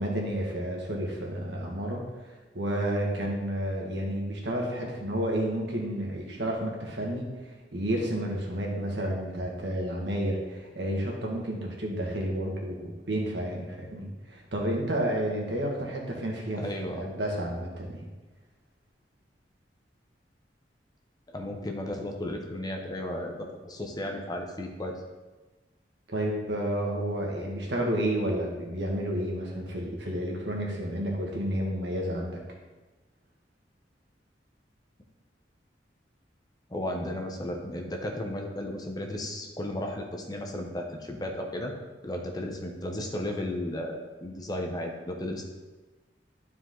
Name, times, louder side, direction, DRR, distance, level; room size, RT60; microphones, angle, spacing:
voice 1, 0.0-16.7 16.9-18.1 26.1-32.4, right 1 dB, 75° right, -1 dB, 1.7 m, -31 dB
voice 2, 16.6-17.1 21.3-24.9 36.7-41.7 42.0-45.5, left 1 dB, 20° left, 2 dB, 0.8 m, -34 dB
11.5 x 4.8 x 3.8 m, 1.2 s
head